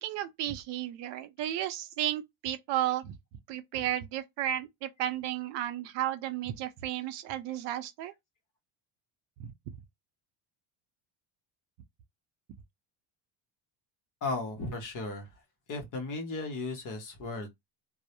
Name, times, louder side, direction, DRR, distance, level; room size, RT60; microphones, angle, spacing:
voice 1, 0.0-3.1 3.5-8.1 9.4-9.5, right 12 dB, 60° right, 0.5 m, -33 dB
voice 2, 14.2-15.3 15.7-17.5, left 3 dB, 40° left, 0.8 m, -35 dB
2.3 x 2.0 x 2.8 m
cardioid pair, 150°, 49 cm